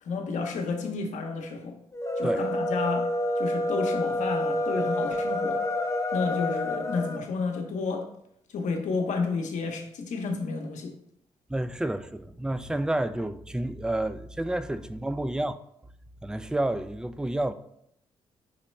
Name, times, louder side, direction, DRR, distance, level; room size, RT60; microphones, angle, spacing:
voice 1, 0.0-1.8 2.2-5.6 6.1-8.1 8.5-10.9, left 4 dB, 70° left, 0.8 m, -31 dB
sound 1, 1.9-7.2, left 1 dB, 20° left, 0.8 m, -28 dB
voice 2, 11.5-15.6 16.2-17.5, right 1 dB, 5° right, 0.3 m, -30 dB
5.3 x 3.0 x 3.1 m
supercardioid pair, 45°, 13 cm